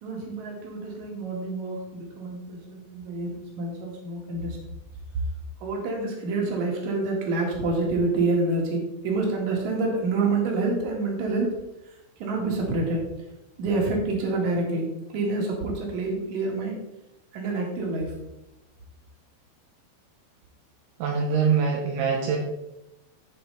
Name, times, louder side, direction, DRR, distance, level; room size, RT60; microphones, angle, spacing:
voice 1, 0.0-4.6 5.6-11.5 12.2-13.0 13.6-14.9 15.1-16.8 17.3-18.1, right 3 dB, 50° right, 0 dB, 2.8 m, -27 dB
voice 2, 21.0-22.4, right 6 dB, 75° right, 0 dB, 2.8 m, -23 dB
14.0 x 4.9 x 4.0 m, 0.94 s
omnidirectional pair, 5.0 m